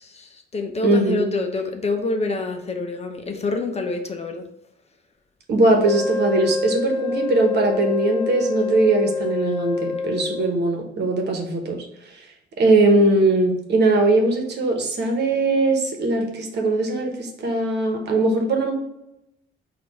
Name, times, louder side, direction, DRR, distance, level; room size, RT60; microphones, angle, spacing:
voice 1, 0.0-4.4, left 3 dB, 30° left, 5 dB, 0.7 m, -27 dB
voice 2, 0.8-1.3 5.5-12.3 12.6-18.7, right 2 dB, 60° right, 3 dB, 1.1 m, -20 dB
Wind instrument woodwind instrument, 5.8-10.6, left 4 dB, 15° left, 1.3 m, -27 dB
4.3 x 2.6 x 4.8 m, 0.87 s
cardioid pair, 90°, 20 cm